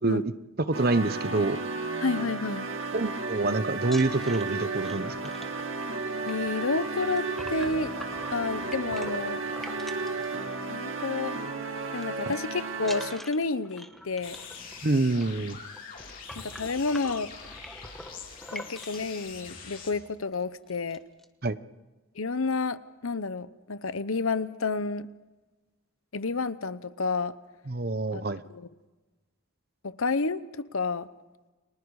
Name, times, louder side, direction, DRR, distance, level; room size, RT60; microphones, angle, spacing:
voice 1, 0.0-0.3 0.7-1.6 2.9-5.2 12.3-12.4 14.8-15.6 21.4-21.6 27.7-28.4, right 2 dB, 45° right, 13 dB, 0.8 m, -26 dB
sound 1, 0.7-13.4, right 3 dB, 70° right, 2.2 m, -33 dB
voice 2, 2.0-2.7 6.3-7.9 8.3-9.4 10.7-11.4 11.9-14.4 16.4-17.3 18.5-21.0 22.2-25.1 26.1-27.3 28.1-28.2 28.5-28.7 29.8-31.1, left 3 dB, 80° left, 14 dB, 0.9 m, -30 dB
sound 2, 3.8-10.9 11.2-11.5 11.8-12.3 12.8-19.2 19.8-19.9 20.3-20.4 20.7-21.3, equal, ahead, 1.3 m, -45 dB
sound 3, 14.2-19.9, left 6 dB, 40° left, 4.1 m, -44 dB
30.0 x 24.5 x 4.9 m, 1.2 s
head